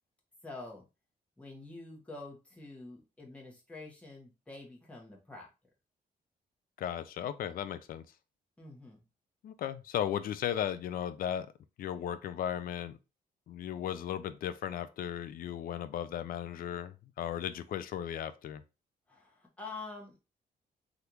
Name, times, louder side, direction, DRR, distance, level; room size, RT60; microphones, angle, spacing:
voice 1, 0.4-0.8 1.4-5.5 8.6-9.0 19.1-20.2, left 3 dB, 10° left, 1.0 m, -47 dB
voice 2, 6.8-8.0 9.4-11.5 11.8-13.0 13.5-18.6, left 10 dB, 60° left, 0.4 m, -36 dB
3.4 x 2.4 x 2.9 m
cardioid pair, 105°, 16 cm